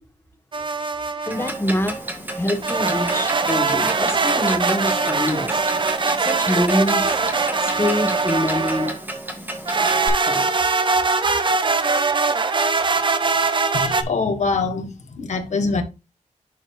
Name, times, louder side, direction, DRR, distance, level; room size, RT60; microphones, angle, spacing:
sound 1, 0.5-1.5 2.6-9.0 9.7-14.0, right 4 dB, 40° right, 0.7 m, -21 dB
voice 1, 1.2-2.0 2.3-5.6 6.2-7.2 7.6-8.9 10.3-10.5, left 1 dB, 20° left, 1.4 m, -25 dB
Clock, 1.3-10.1, right 1 dB, 15° right, 1.5 m, -33 dB
voice 2, 13.7-15.8, left 4 dB, 65° left, 1.5 m, -24 dB
10.5 x 4.6 x 2.5 m
wide cardioid pair, 130°, 13 cm